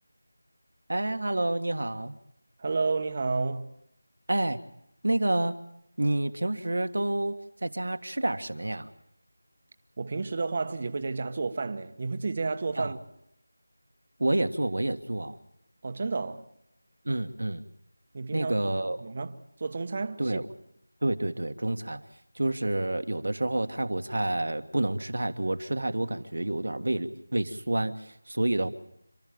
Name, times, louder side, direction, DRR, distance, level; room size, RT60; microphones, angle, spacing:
voice 1, 0.9-2.2 4.3-4.6 5.0-5.6 6.0-8.9 12.7-12.9 14.2-15.4 17.0-17.6 18.3-19.0 20.2-20.5 21.0-22.0 22.3-28.7, right 1 dB, 75° right, 1.6 m, -29 dB
voice 2, 2.6-3.7 10.0-13.0 15.8-16.5 18.1-18.5 18.8-20.4, right 4 dB, 30° right, 1.1 m, -31 dB
28.0 x 13.0 x 8.6 m
figure-of-eight pair, 175°, 0 cm